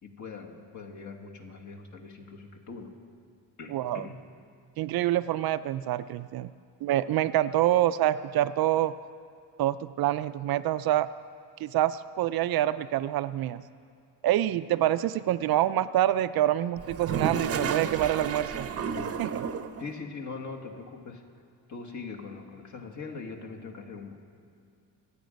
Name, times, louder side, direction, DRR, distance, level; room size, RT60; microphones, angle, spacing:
voice 1, 0.0-3.0 3.6-4.2 19.8-21.2 21.7-24.2, left 4 dB, 45° left, 2 dB, 1.8 m, -41 dB
voice 2, 3.7-4.0 4.8-6.5 6.8-8.9 9.6-11.1 11.6-13.6 14.2-18.7 19.2-19.4, right 13 dB, 60° right, 13 dB, 0.5 m, -26 dB
Toilet flush, 16.8-19.8, right 6 dB, 35° right, 0.8 m, -32 dB
25.0 x 8.8 x 5.2 m, 2.4 s
cardioid pair, 145°, 41 cm